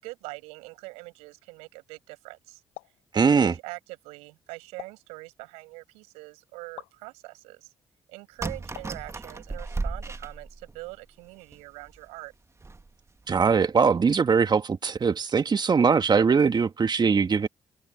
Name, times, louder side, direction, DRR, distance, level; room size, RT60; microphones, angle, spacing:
voice 1, 0.0-2.6 3.1-7.7 8.1-12.3, right 24 dB, 80° right, 7.0 m, -43 dB
sound 1, 2.7-3.1 4.8-5.1 6.8-7.0 8.7-9.1, left 30 dB, 85° left, 3.8 m, -44 dB
voice 2, 3.1-3.5 13.3-17.5, right 5 dB, 40° right, 2.0 m, -21 dB
sound 2, 8.4-10.9 11.5-11.6 11.9-12.0 12.6-12.9 13.3-13.5, right 3 dB, 25° right, 1.8 m, -35 dB
hypercardioid pair, 45°, 11 cm